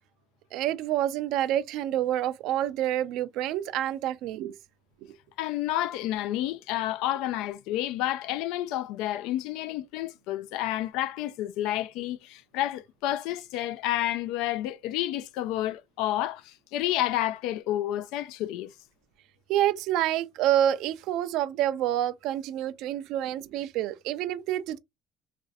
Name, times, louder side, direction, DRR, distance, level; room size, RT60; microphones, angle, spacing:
voice 1, 0.5-4.5 19.5-24.8, right 12 dB, 75° right, 0.4 m, -27 dB
voice 2, 5.4-18.7, left 13 dB, 80° left, 0.3 m, -30 dB
3.1 x 2.5 x 2.5 m
cardioid pair, 105°, 0 cm